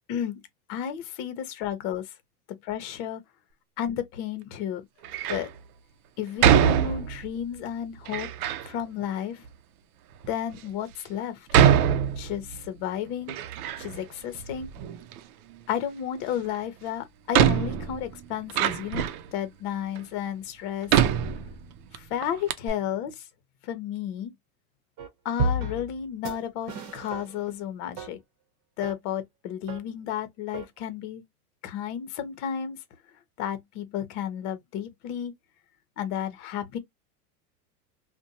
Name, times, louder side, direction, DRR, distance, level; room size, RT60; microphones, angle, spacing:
voice 1, 0.1-0.4 0.7-2.1 2.5-3.2 3.8-4.8 5.3-5.5 6.2-8.3 8.6-9.4 10.3-11.5 12.0-13.4 13.8-14.7 15.7-21.0 21.9-23.2 23.6-24.3 25.2-28.2 28.8-31.2 31.6-32.8 33.4-35.3 36.0-36.8, left 9 dB, 50° left, 0.8 m, -32 dB
Door, 5.0-5.5 6.4-7.4 8.0-8.7 9.4-9.5 10.2-10.3 11.5-12.7 13.0-14.1 14.3-15.2 16.5-16.6 17.3-19.3 19.9-20.0 20.9-22.0 22.2-22.3 22.5-22.7, right 9 dB, 70° right, 0.6 m, -23 dB
sound 1, 25.0-25.1 25.4-26.0 26.2-26.4 26.7-27.5 28.0-28.1 28.8-28.9 29.7-29.8 30.5-30.6, right 1 dB, 40° right, 1.0 m, -30 dB
2.5 x 2.2 x 2.7 m
supercardioid pair, 125°, 45 cm